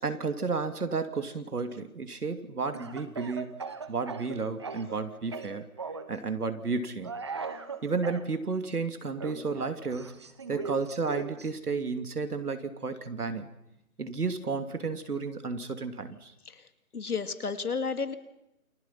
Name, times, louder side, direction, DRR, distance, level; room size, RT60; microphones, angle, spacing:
voice 1, 0.0-3.5 3.9-5.7 6.1-7.1 7.8-10.1 10.5-13.5 14.0-16.3, right 4 dB, 90° right, 8 dB, 3.0 m, -32 dB
Speech / Cough, 2.7-5.0 5.3-6.1 7.0-8.2 9.2-11.5, right 4 dB, 20° right, 0.8 m, -39 dB
voice 2, 16.9-18.1, left 5 dB, 80° left, 9 dB, 2.7 m, -32 dB
28.5 x 25.5 x 5.9 m, 0.86 s
hypercardioid pair, 160°, 44 cm